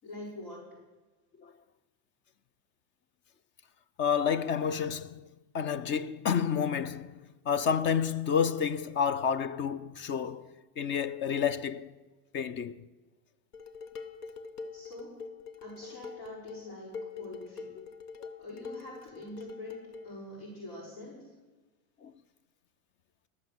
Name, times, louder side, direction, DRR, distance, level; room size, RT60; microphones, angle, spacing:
voice 1, 0.0-0.7 14.7-15.2 15.6-17.8 18.4-21.3, left 1 dB, 60° left, 6.6 m, -45 dB
voice 2, 4.0-5.3 5.5-7.2 7.5-11.9 12.3-12.8 22.0-22.1, left 7 dB, 25° left, 0.4 m, -30 dB
Dishes pots and pans, 13.5-20.1, left 4 dB, 90° left, 1.4 m, -44 dB
21.0 x 7.3 x 7.8 m
supercardioid pair, 115°, 44 cm